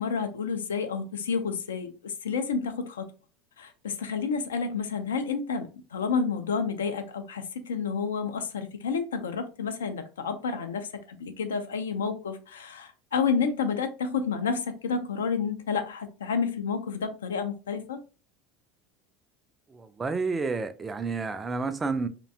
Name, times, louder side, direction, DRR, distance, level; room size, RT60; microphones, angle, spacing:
voice 1, 0.0-3.1 3.6-18.0, left 5 dB, 75° left, 0.3 m, -30 dB
voice 2, 19.7-22.1, right 4 dB, 20° right, 0.3 m, -30 dB
2.6 x 2.1 x 2.5 m
figure-of-eight pair, 75°, 0 cm